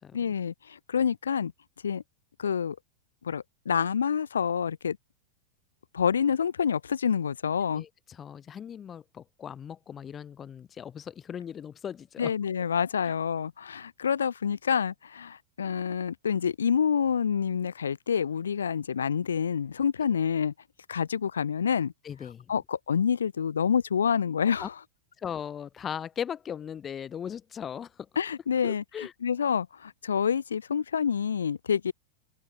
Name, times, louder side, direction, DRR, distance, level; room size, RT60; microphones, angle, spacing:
voice 1, 0.1-1.5 1.8-2.0 2.4-2.8 3.2-5.0 5.9-7.8 12.2-20.5 20.9-21.9 22.5-24.7 28.2-31.9, left 7 dB, 70° left, 4.4 m, -27 dB
voice 2, 7.7-12.3 22.0-22.4 24.6-24.7 25.2-28.1 28.6-29.1, left 8 dB, 25° left, 2.5 m, -38 dB
open air
figure-of-eight pair, 90°, 0 cm